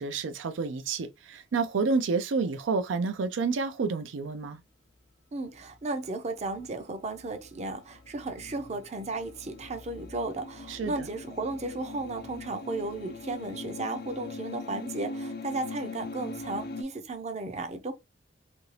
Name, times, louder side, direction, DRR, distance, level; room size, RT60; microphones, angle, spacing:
voice 1, 0.0-4.6 10.7-11.1, right 4 dB, 90° right, 0.4 m, -29 dB
voice 2, 5.3-17.9, right 2 dB, 35° right, 0.5 m, -35 dB
sound 1, 6.4-16.8, left 3 dB, 55° left, 0.5 m, -42 dB
2.8 x 2.6 x 3.1 m
head